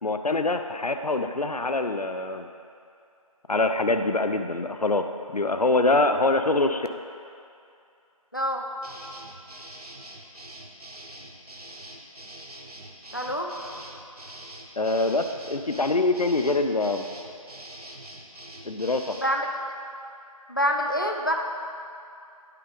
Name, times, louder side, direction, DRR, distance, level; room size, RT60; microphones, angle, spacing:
voice 1, 0.0-2.5 3.5-5.1 5.3-6.9 14.8-17.1 18.6-19.1, left 2 dB, 85° left, 7 dB, 0.6 m, -24 dB
voice 2, 8.3-8.6 13.1-13.5 19.1-19.4 20.5-21.3, equal, 35° left, 2 dB, 0.5 m, -26 dB
sound 1, 8.8-19.3, right 1 dB, 80° right, 1.0 m, -44 dB
8.6 x 3.9 x 5.1 m, 2.5 s
figure-of-eight pair, 170°, 19 cm